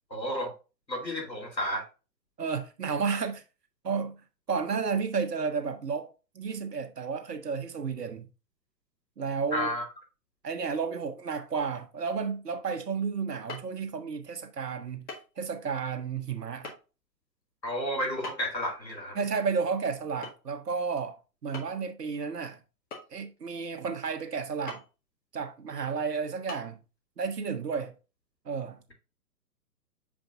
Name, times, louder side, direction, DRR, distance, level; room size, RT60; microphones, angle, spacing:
voice 1, 0.1-0.5 0.9-1.9 9.5-9.8 17.6-19.2, equal, 90° left, 3.1 m, -31 dB
voice 2, 2.4-3.4 3.8-4.2 4.5-8.3 9.2-9.7 10.4-15.1 15.4-16.7 19.1-22.6 23.1-24.8 25.3-26.8 27.2-27.9 28.4-28.8, right 5 dB, 70° right, 1.4 m, -32 dB
Mandrill Striking Rock, 13.5-13.7 15.1-15.3 15.6-15.7 16.6-16.8 18.2-18.6 20.2-20.5 20.8-20.9 21.5-21.9 22.9-23.4 24.7-24.9 25.5-25.6 26.5-26.6, left 3 dB, 20° left, 1.7 m, -41 dB
7.3 x 5.2 x 2.6 m
figure-of-eight pair, 125°, 50 cm